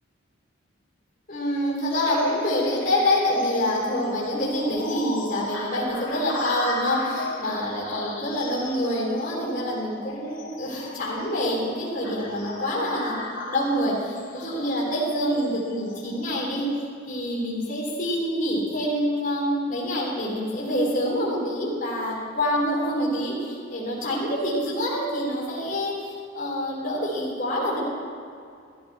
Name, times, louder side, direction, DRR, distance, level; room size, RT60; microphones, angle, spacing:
voice 1, 1.3-13.1 13.5-27.8, equal, 45° left, -5 dB, 3.9 m, -26 dB
sound 1, 1.9-16.1, left 2 dB, 75° left, 3.1 m, -35 dB
15.0 x 13.5 x 4.4 m, 2.4 s
head